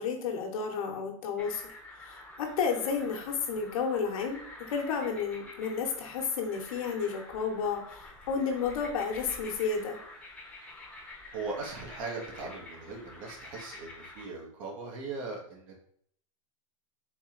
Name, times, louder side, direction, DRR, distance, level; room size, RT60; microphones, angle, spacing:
voice 1, 0.0-1.6 1.9-4.4 4.7-10.0, left 5 dB, 75° left, 3 dB, 1.1 m, -32 dB
sound 1, 1.4-14.3, left 2 dB, 5° left, 0.9 m, -48 dB
voice 2, 11.3-15.9, right 3 dB, 65° right, 0 dB, 1.5 m, -39 dB
4.0 x 3.1 x 3.8 m, 0.64 s
supercardioid pair, 130°, 18 cm